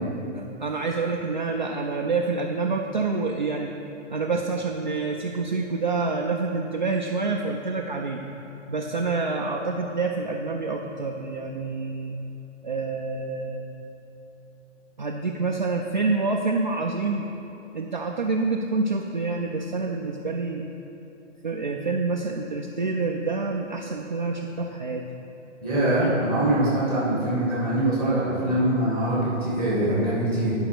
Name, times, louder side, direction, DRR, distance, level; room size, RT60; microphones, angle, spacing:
voice 1, 0.3-3.7 4.1-8.2 8.7-12.2 12.6-13.6 15.0-17.3 17.7-20.6 21.4-25.0, right 3 dB, 40° right, 1 dB, 0.4 m, -27 dB
voice 2, 25.6-30.5, right 1 dB, 5° left, -9 dB, 1.9 m, -23 dB
10.0 x 5.6 x 5.9 m, 2.9 s
hypercardioid pair, 180°, 37 cm